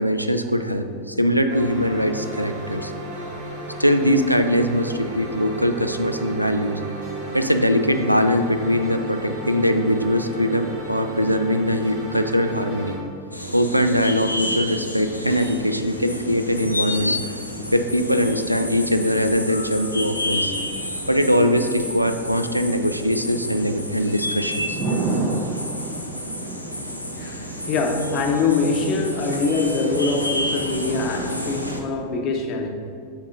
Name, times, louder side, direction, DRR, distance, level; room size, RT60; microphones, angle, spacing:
voice 1, 0.0-2.9 3.8-6.8 7.3-13.0 13.5-17.1 17.7-20.5 21.1-24.8 25.7-25.9 27.2-27.3, equal, 90° right, 8 dB, 0.3 m, -21 dB
sound 1, 1.5-13.0, right 2 dB, 55° right, 1.5 m, -34 dB
sound 2, 13.3-31.8, left 1 dB, 90° left, 0.6 m, -30 dB
Thunder / Rain, 18.9-31.6, right 3 dB, 35° right, 0.8 m, -34 dB
voice 2, 27.2-32.7, left 4 dB, 35° left, 3 dB, 0.8 m, -23 dB
8.6 x 5.2 x 2.5 m, 2.4 s
figure-of-eight pair, 90°, 0 cm